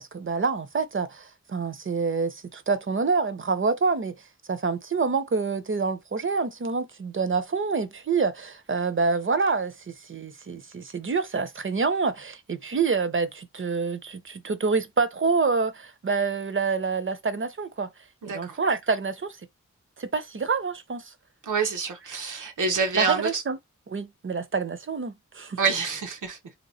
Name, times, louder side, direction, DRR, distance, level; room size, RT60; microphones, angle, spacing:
voice 1, 0.0-4.1 4.5-17.9 18.3-19.4 20.0-21.1 23.0-23.6 23.9-25.6, right 4 dB, 40° right, 0.7 m, -27 dB
voice 2, 18.2-18.6 21.4-23.4 25.6-26.4, right 5 dB, 85° right, 1.0 m, -27 dB
2.9 x 2.3 x 4.1 m
cardioid pair, 65°, 30 cm